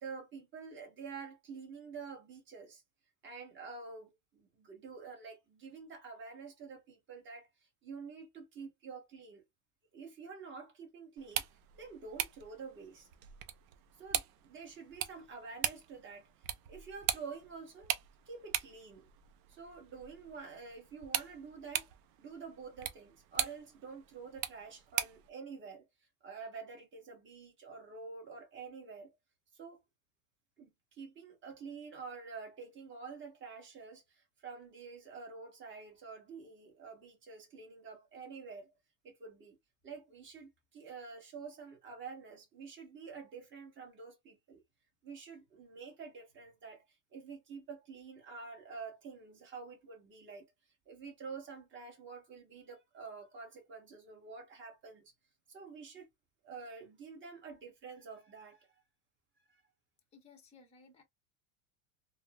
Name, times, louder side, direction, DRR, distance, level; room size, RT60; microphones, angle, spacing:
voice 1, 0.0-2.8 3.2-7.5 7.8-9.4 9.9-11.5 11.8-13.1 14.0-16.3 16.7-17.9 18.3-19.1 19.5-21.9 22.2-25.9 26.2-29.1 29.5-29.8 30.6-38.7 39.0-39.6 39.8-44.6 45.0-46.8 47.1-50.5 50.9-55.1 55.5-56.1 56.4-58.8 59.5-59.6, right 5 dB, 25° right, 1.2 m, -48 dB
sound 1, 11.2-25.3, right 11 dB, 45° right, 0.4 m, -40 dB
voice 2, 60.1-61.0, left 4 dB, 15° left, 0.8 m, -59 dB
3.6 x 2.1 x 2.3 m
supercardioid pair, 150°, 47 cm